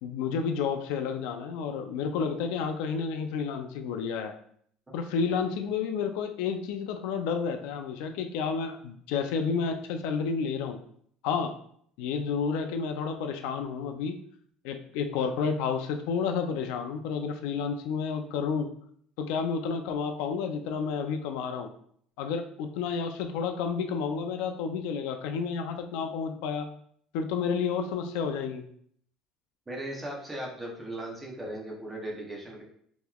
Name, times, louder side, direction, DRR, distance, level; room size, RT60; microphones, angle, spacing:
voice 1, 0.0-4.3 4.9-10.8 11.2-11.5 12.0-14.2 14.6-18.7 19.2-21.7 22.2-26.7 27.1-28.6, left 6 dB, 75° left, 6 dB, 0.3 m, -30 dB
voice 2, 29.7-32.6, right 1 dB, 10° right, -2 dB, 0.6 m, -37 dB
3.7 x 2.9 x 2.2 m, 0.64 s
cardioid pair, 175°, 0 cm